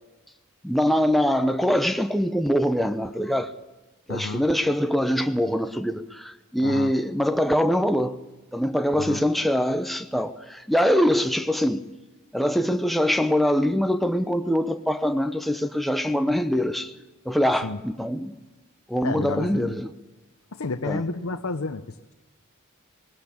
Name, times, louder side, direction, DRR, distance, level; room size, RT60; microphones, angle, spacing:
voice 1, 0.6-3.5 4.1-8.2 8.5-11.8 12.3-16.9 17.3-18.4 18.9-19.9 20.8-21.0, equal, ahead, 0.8 m, -23 dB
voice 2, 4.1-4.4 6.6-6.9 8.9-9.2 17.6-17.8 19.0-19.8 20.5-21.8, left 3 dB, 85° left, 0.8 m, -30 dB
19.0 x 18.0 x 8.6 m
head